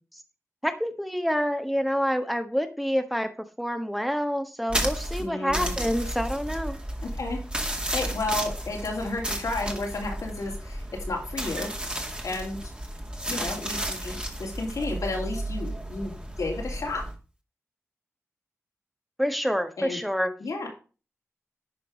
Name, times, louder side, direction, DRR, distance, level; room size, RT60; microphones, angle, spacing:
voice 1, 0.6-3.3 3.6-6.8 19.2-20.3, equal, ahead, 7 dB, 1.3 m, -27 dB
sound 1, 4.7-17.1, right 1 dB, 20° right, 2.1 m, -33 dB
voice 2, 5.2-5.7 7.0-7.4 7.9-11.7 12.2-12.6 13.3-16.1 16.4-17.0 19.8-20.0 20.4-20.7, left 2 dB, 80° left, 0 dB, 3.1 m, -32 dB
11.0 x 4.5 x 5.1 m, 0.35 s
cardioid pair, 40°, 6 cm